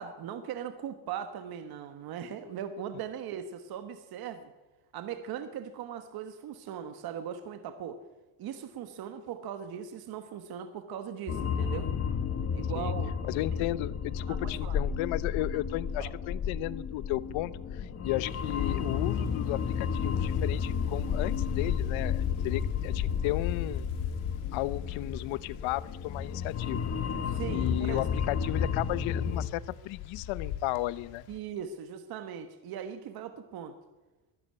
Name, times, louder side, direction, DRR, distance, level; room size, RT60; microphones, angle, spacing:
voice 1, 0.0-4.5 4.9-8.0 8.4-11.9 12.5-13.2 14.3-14.8 16.0-16.1 27.3-28.1 31.3-33.7, right 8 dB, 50° right, 9 dB, 1.4 m, -39 dB
sound 1, 11.3-29.5, left 6 dB, 30° left, 1.4 m, -32 dB
voice 2, 13.3-23.9 24.5-26.9 27.5-31.2, left 17 dB, 70° left, 19 dB, 0.9 m, -34 dB
Wind, 18.2-31.4, left 10 dB, 85° left, 2.7 m, -38 dB
22.0 x 12.5 x 9.6 m, 1.1 s
cardioid pair, 165°, 48 cm